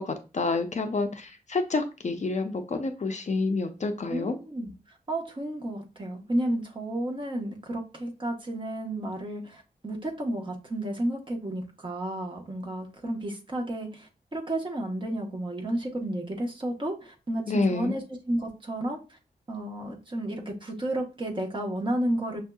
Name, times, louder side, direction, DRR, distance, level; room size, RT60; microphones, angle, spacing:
voice 1, 0.0-4.4 17.5-18.0, left 3 dB, 45° left, 6 dB, 0.5 m, -28 dB
voice 2, 4.1-4.7 5.1-13.9 14.3-18.0 18.3-19.0 19.5-22.4, right 1 dB, 30° right, 0 dB, 1.0 m, -32 dB
6.2 x 2.7 x 2.3 m, 0.30 s
wide cardioid pair, 100°, 17 cm